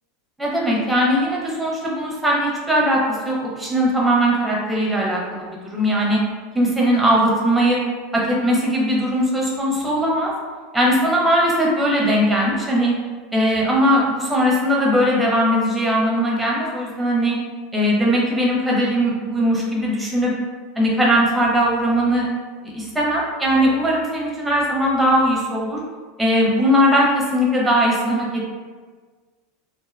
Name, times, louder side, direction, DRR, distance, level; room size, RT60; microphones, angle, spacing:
voice 1, 0.4-3.0 3.2-6.2 6.5-7.8 8.1-10.3 10.7-12.9 13.3-17.4 17.7-20.3 20.8-22.3 22.7-25.8 26.2-28.5, equal, 10° right, -4 dB, 0.7 m, -19 dB
2.6 x 2.1 x 2.4 m, 1.5 s
hypercardioid pair, 90°, 0 cm